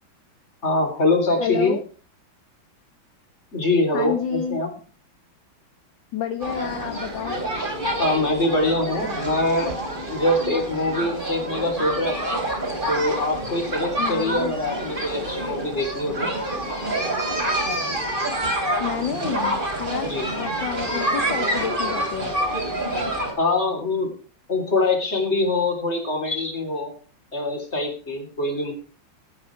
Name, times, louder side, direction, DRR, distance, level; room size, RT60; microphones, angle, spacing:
voice 1, 0.6-1.8 3.5-4.7 8.0-9.8 10.1-12.4 12.9-16.3 20.0-20.3 23.4-24.1 24.5-26.9 27.3-28.7, left 2 dB, 30° left, 4 dB, 3.7 m, -24 dB
voice 2, 1.4-1.8 3.9-4.6 6.1-7.4 14.0-14.6 18.8-22.4, left 8 dB, 65° left, 8 dB, 1.7 m, -30 dB
sound 1, 6.4-23.3, right 1 dB, 25° right, 3.6 m, -27 dB
15.5 x 9.1 x 4.6 m, 0.37 s
omnidirectional pair, 2.3 m